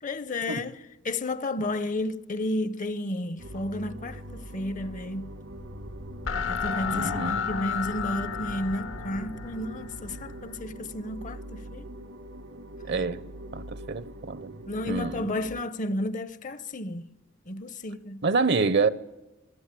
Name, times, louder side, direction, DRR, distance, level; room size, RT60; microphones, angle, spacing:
voice 1, 0.0-5.3 6.4-11.9 14.7-17.1 17.5-18.2, left 1 dB, 40° left, 0.7 m, -32 dB
sound 1, 3.4-15.6, right 1 dB, 85° right, 2.2 m, -42 dB
sound 2, 5.5-10.6, left 6 dB, 80° left, 1.2 m, -33 dB
voice 2, 6.9-7.4 12.9-13.2 13.5-15.3 18.2-18.9, right 4 dB, 60° right, 0.8 m, -27 dB
27.0 x 17.5 x 8.4 m
head